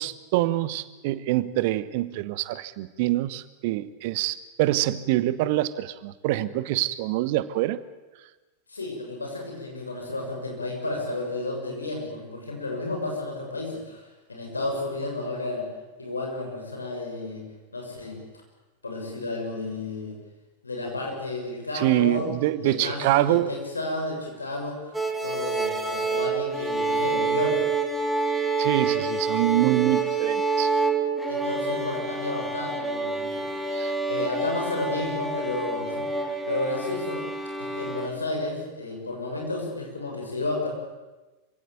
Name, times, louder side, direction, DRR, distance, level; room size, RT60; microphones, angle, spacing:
voice 1, 0.0-7.8 21.7-23.5 28.6-30.7 33.7-33.9, right 15 dB, 50° right, 16 dB, 1.1 m, -25 dB
voice 2, 8.7-15.7 16.0-17.4 17.7-18.2 18.8-20.2 20.6-27.6 31.3-33.8 34.1-37.3 37.6-40.7, left 2 dB, 80° left, 1 dB, 6.7 m, -32 dB
sound 1, 24.9-38.1, right 4 dB, 5° right, 2.6 m, -27 dB
26.0 x 16.5 x 9.2 m, 1.1 s
figure-of-eight pair, 90°, 0 cm